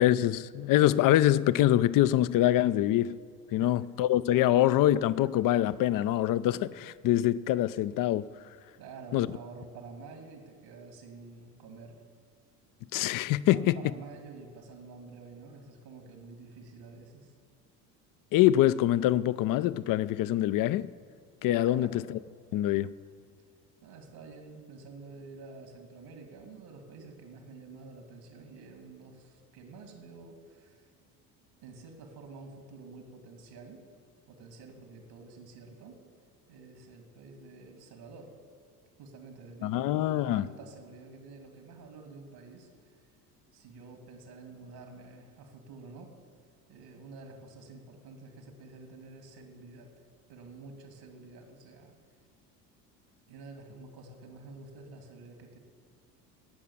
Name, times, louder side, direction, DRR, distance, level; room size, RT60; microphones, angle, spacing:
voice 1, 0.0-3.2 3.5-8.3 9.1-9.3 12.9-13.8 18.3-20.9 21.4-22.2 22.5-22.9 39.6-40.4, left 13 dB, 45° left, 0.5 m, -25 dB
voice 2, 8.8-12.0 13.5-17.3 21.7-22.1 23.8-30.9 31.6-33.8 34.3-36.0 36.5-38.4 39.0-43.1 43.5-46.2 46.7-49.9 50.3-51.9 53.3-55.6, right 3 dB, 65° right, 2.4 m, -49 dB
17.5 x 5.8 x 7.1 m
hypercardioid pair, 70°, 47 cm